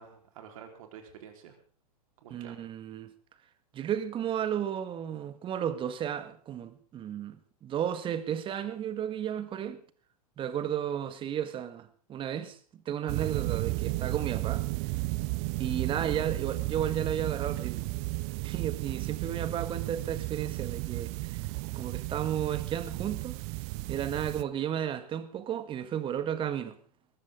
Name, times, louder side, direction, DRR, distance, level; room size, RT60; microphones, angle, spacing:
voice 1, 0.0-1.6 2.2-2.7 16.0-16.1, right 8 dB, 60° right, 4.2 m, -49 dB
voice 2, 2.3-3.1 3.7-9.8 10.4-14.7 15.6-17.9 18.4-21.4 21.7-23.4 23.9-26.8, right 9 dB, 25° right, 1.6 m, -33 dB
sound 1, 13.1-24.4, right 22 dB, 40° right, 0.6 m, -33 dB
21.5 x 14.5 x 3.8 m
hypercardioid pair, 110°, 20 cm